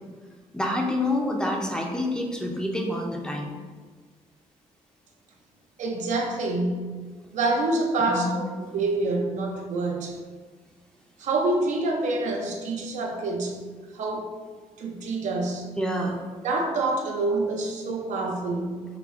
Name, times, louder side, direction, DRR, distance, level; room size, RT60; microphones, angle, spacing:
voice 1, 0.5-3.5 8.1-8.4 15.8-16.2, left 1 dB, 5° left, 0 dB, 0.5 m, -27 dB
voice 2, 5.8-7.0 7.3-10.2 11.2-13.6 13.9-14.3 14.8-15.7 16.4-18.8, right 2 dB, 80° right, 1 dB, 0.6 m, -27 dB
5.0 x 2.1 x 3.5 m, 1.4 s
cardioid pair, 125°, 12 cm